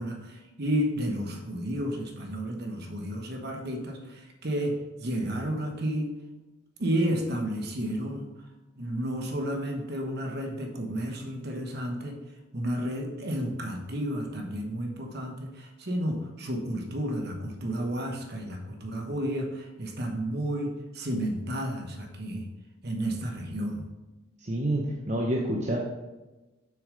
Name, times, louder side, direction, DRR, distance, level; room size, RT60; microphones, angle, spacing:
voice 1, 0.0-6.1 6.8-8.3 8.8-12.1 12.5-22.5 22.8-23.8, equal, 50° right, 3 dB, 1.1 m, -31 dB
voice 2, 24.4-25.8, right 1 dB, 35° right, -2 dB, 0.7 m, -28 dB
7.0 x 6.3 x 3.8 m, 1.1 s
head